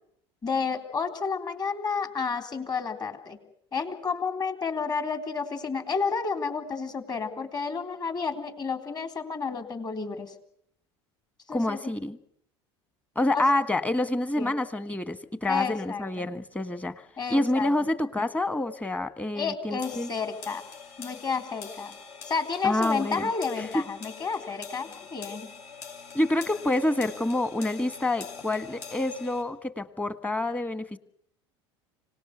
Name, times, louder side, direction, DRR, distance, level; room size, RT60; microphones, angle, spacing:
voice 1, 0.4-3.4 3.7-10.3 11.5-11.9 13.3-13.4 14.4-14.5 15.5-16.3 17.2-17.7 19.4-20.6 21.0-22.0 22.2-25.5, left 5 dB, 30° left, 7 dB, 3.7 m, -31 dB
voice 2, 11.5-12.2 13.1-17.0 17.3-20.1 22.6-23.3 23.6-23.7 26.1-31.0, left 1 dB, 10° left, 12 dB, 1.5 m, -27 dB
sound 1, 19.8-29.4, left 5 dB, 70° left, 6.0 m, -44 dB
25.5 x 18.5 x 8.1 m, 0.70 s
hypercardioid pair, 85°, 14 cm